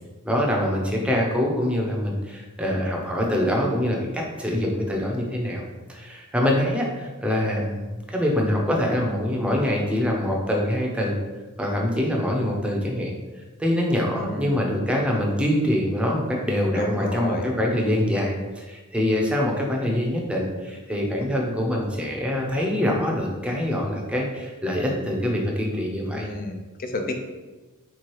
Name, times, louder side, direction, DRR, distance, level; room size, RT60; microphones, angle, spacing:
voice 1, 0.2-5.6 5.9-11.2 11.6-13.1 13.6-26.3, left 1 dB, 5° right, -1 dB, 0.7 m, -24 dB
voice 2, 14.2-14.6 16.8-17.4 26.1-27.1, left 2 dB, 40° left, 5 dB, 0.5 m, -31 dB
3.5 x 3.2 x 4.5 m, 1.2 s
head